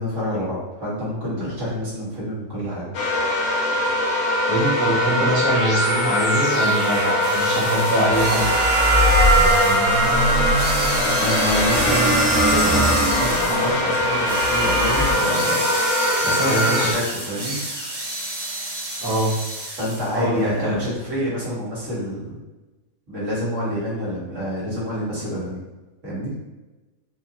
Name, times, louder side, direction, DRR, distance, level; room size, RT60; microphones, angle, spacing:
voice 1, 0.0-2.9 11.2-15.6 16.2-17.6 19.8-22.4 23.1-25.6 26.0-26.3, equal, 60° right, -9 dB, 2.1 m, -27 dB
sound 1, 2.9-16.9, left 1 dB, 75° left, 1.2 m, -22 dB
voice 2, 4.5-8.5 16.5-17.0 19.0-19.4 20.1-20.8, right 1 dB, 20° right, -4 dB, 0.7 m, -23 dB
sound 2, 5.5-15.1, right 1 dB, 85° right, 1.5 m, -22 dB
sound 3, 6.3-20.2, right 1 dB, 40° right, 0.3 m, -30 dB
4.3 x 2.6 x 2.9 m, 1.1 s
omnidirectional pair, 1.5 m